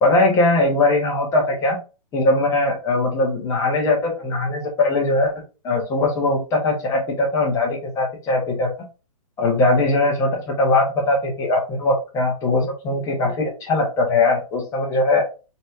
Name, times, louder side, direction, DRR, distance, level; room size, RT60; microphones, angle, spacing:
voice 1, 0.0-1.8 2.1-5.3 5.6-8.7 9.4-15.2, left 2 dB, 15° left, -1 dB, 1.5 m, -20 dB
4.3 x 3.2 x 2.7 m, 0.31 s
hypercardioid pair, 155°, 19 cm